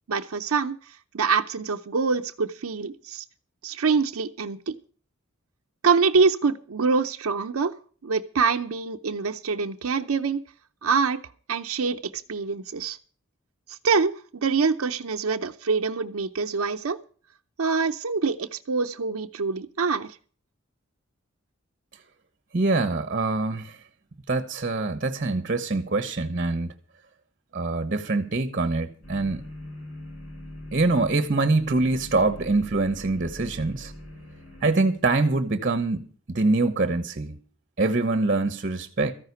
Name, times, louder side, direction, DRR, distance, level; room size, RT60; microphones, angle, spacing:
voice 1, 0.1-3.2 3.6-4.8 5.8-7.7 8.0-10.4 10.8-11.2 11.5-13.0 13.7-14.1 14.4-17.0 17.6-20.2, right 5 dB, 90° right, 0.6 m, -25 dB
voice 2, 22.5-23.8 24.3-26.7 27.5-29.5 30.7-33.9 34.6-37.4 37.8-39.1, right 3 dB, 40° right, 1.0 m, -24 dB
sound 1, 29.0-34.7, left 1 dB, 70° left, 4.8 m, -41 dB
14.0 x 5.7 x 9.5 m
head